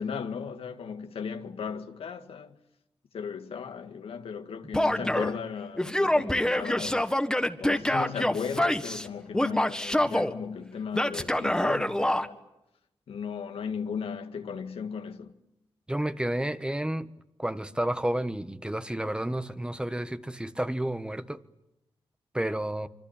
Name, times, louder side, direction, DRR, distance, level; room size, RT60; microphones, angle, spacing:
voice 1, 0.0-2.6 3.1-7.1 7.6-12.4 13.1-15.3, left 6 dB, 80° left, 1.8 m, -36 dB
Male speech man speaking / Yell, 4.7-5.4 5.8-9.1 9.3-10.3 10.9-12.3, left 1 dB, 5° left, 1.7 m, -26 dB
voice 2, 15.9-17.1 17.4-21.4 22.3-22.9, right 1 dB, 10° right, 1.4 m, -31 dB
26.0 x 25.0 x 8.9 m
cardioid pair, 70°, 10 cm